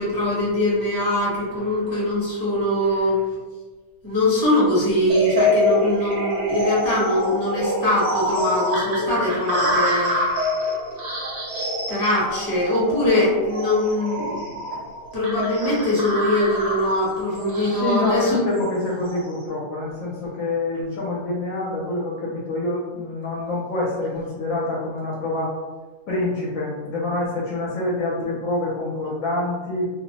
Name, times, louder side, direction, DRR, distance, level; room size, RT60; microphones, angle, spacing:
voice 1, 0.0-3.2 4.0-10.2 11.9-14.4 15.1-18.4, left 1 dB, 20° left, -7 dB, 0.8 m, -22 dB
sound 1, 5.1-19.3, left 1 dB, 55° right, 0.6 m, -26 dB
voice 2, 17.7-25.5 26.1-29.9, left 2 dB, 70° left, -5 dB, 0.9 m, -26 dB
2.6 x 2.0 x 2.8 m, 1.3 s
omnidirectional pair, 1.6 m